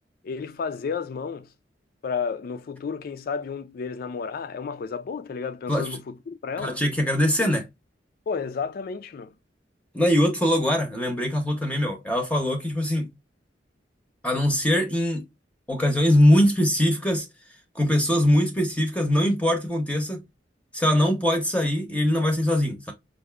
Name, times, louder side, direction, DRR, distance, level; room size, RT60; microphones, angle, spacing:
voice 1, 0.2-1.5 2.0-6.8 8.3-9.3, left 5 dB, 55° left, 0.3 m, -32 dB
voice 2, 6.6-7.7 9.9-13.1 14.2-15.2 15.7-17.3 17.7-20.2 20.7-22.9, equal, 5° left, 0.7 m, -22 dB
4.7 x 2.5 x 2.2 m
head